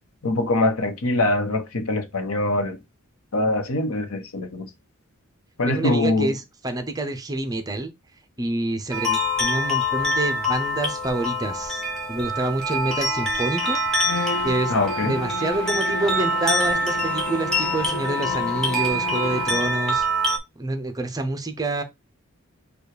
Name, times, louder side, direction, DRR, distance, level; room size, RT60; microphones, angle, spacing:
voice 1, 0.2-2.8 3.3-4.7 5.6-6.3 14.7-15.2, left 2 dB, 90° left, 1.0 m, -23 dB
voice 2, 5.7-7.9 8.4-11.8 12.1-13.8 14.4-14.7 15.0-20.0 20.6-21.8, right 2 dB, 15° right, 0.6 m, -27 dB
sound 1, 8.9-20.4, equal, ahead, 1.2 m, -25 dB
Bowed string instrument, 14.0-19.8, left 2 dB, 55° left, 0.6 m, -33 dB
4.7 x 2.4 x 4.8 m
head